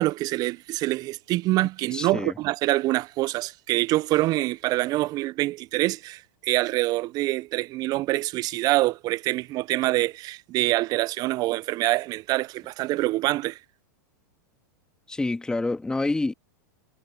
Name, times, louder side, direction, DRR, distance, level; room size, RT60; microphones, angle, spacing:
voice 1, 0.0-13.6, right 18 dB, 40° right, 0.5 m, -25 dB
voice 2, 1.9-2.3 15.1-16.3, left 2 dB, 10° left, 1.6 m, -27 dB
hypercardioid pair, 115°, 11 cm